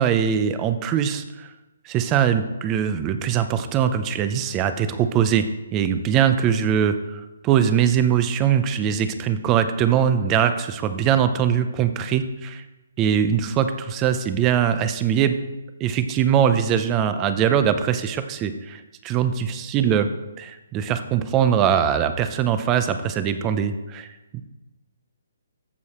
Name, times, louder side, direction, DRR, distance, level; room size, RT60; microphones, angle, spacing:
voice 1, 0.0-1.5 1.9-5.4 5.7-12.6 13.0-15.4 15.8-20.1 20.4-24.1 24.3-24.4, right 8 dB, 20° right, 10 dB, 0.6 m, -22 dB
14.0 x 4.8 x 4.3 m, 1.1 s
hypercardioid pair, 155°, 0 cm